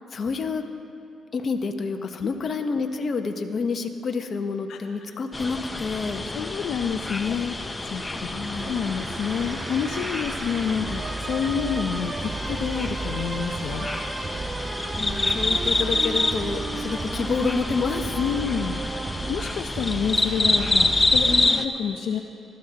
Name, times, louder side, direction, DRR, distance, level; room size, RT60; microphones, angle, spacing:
voice 1, 0.1-0.6 1.3-6.3 8.3-8.7 15.0-18.2 21.2-21.6, left 4 dB, 50° left, 6 dB, 1.0 m, -28 dB
sound 1, 5.3-21.7, left 2 dB, 15° left, 0.6 m, -27 dB
voice 2, 6.3-8.3 8.6-13.9 18.2-22.2, left 7 dB, 70° left, 4 dB, 0.5 m, -29 dB
sound 2, 6.6-21.5, right 4 dB, 30° right, 0.3 m, -34 dB
19.5 x 13.5 x 2.9 m, 2.7 s
cardioid pair, 90°, 0 cm